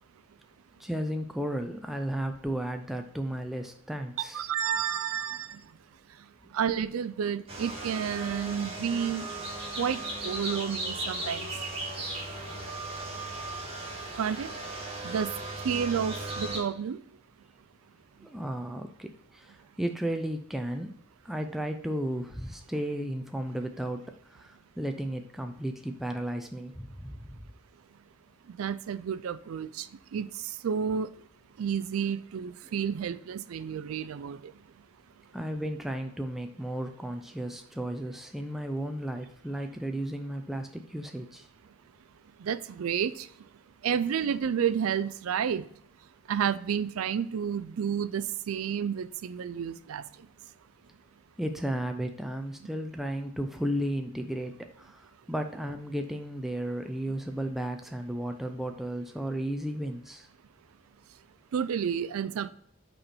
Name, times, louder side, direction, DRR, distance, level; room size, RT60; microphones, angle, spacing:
voice 1, 0.8-4.5 18.2-20.9 21.2-27.4 35.3-41.5 51.4-60.3, right 1 dB, ahead, 5 dB, 0.4 m, -34 dB
voice 2, 4.3-5.6 6.5-9.3 9.8-11.5 14.2-14.5 15.0-15.3 15.6-17.0 28.6-29.9 30.1-30.3 30.6-31.1 31.6-34.4 42.4-43.3 43.8-45.6 46.3-50.0 61.5-62.5, right 7 dB, 85° right, 14 dB, 0.4 m, -30 dB
sound 1, 7.5-16.6, right 2 dB, 30° right, 1.5 m, -36 dB
5.4 x 4.3 x 4.2 m, 0.67 s
head